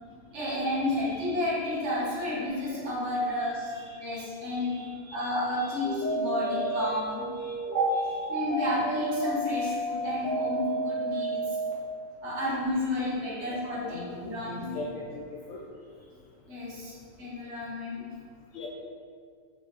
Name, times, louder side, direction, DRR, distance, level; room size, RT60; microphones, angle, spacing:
voice 1, 0.3-4.8 5.1-7.2 7.6-8.0 8.3-11.6 12.2-14.6 16.5-18.1, left 1 dB, 45° right, -7 dB, 1.9 m, -31 dB
voice 2, 1.0-1.3 3.4-4.2 4.4-6.0 6.5-7.0 7.3-7.5 13.5-15.6 18.5-18.7, left 2 dB, 55° left, -4 dB, 0.9 m, -42 dB
sound 1, 5.8-11.7, right 1 dB, 30° left, 1.2 m, -31 dB
6.0 x 5.1 x 4.0 m, 2.1 s
omnidirectional pair, 1.7 m